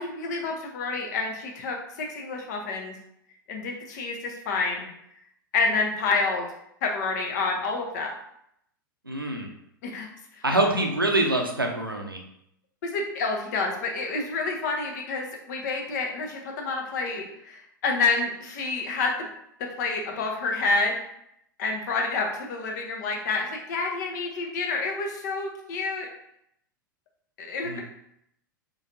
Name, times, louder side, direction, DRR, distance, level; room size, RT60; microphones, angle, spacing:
voice 1, 0.0-3.0 3.5-4.9 5.5-6.5 6.8-8.1 9.8-10.4 12.8-19.2 19.8-21.0 21.6-26.1 27.4-27.8, left 3 dB, 55° left, 1 dB, 0.9 m, -28 dB
voice 2, 9.1-9.5 10.4-12.2 27.6-27.8, right 2 dB, 90° right, 2 dB, 0.7 m, -25 dB
3.8 x 3.3 x 2.6 m, 0.75 s
figure-of-eight pair, 95°, 11 cm